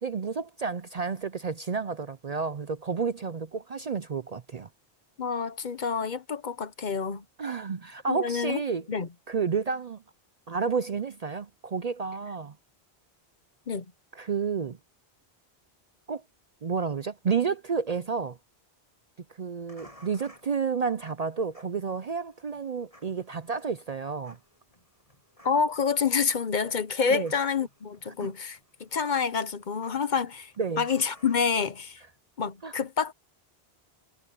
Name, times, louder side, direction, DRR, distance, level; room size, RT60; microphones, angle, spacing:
voice 1, 0.0-4.7 7.4-8.8 9.3-10.0 10.5-12.5 14.1-14.8 16.1-16.2 16.6-18.4 19.4-24.4 27.1-27.3 28.2-28.3 30.6-30.8 32.6-32.7, right 5 dB, 45° right, 0.6 m, -30 dB
voice 2, 5.2-7.2 8.1-8.6 8.9-9.1 13.7-13.9 25.4-30.5 30.8-32.0 32.4-33.1, left 6 dB, 50° left, 0.9 m, -28 dB
sound 1, 19.7-32.2, equal, 35° left, 8.2 m, -58 dB
omnidirectional pair, 1.1 m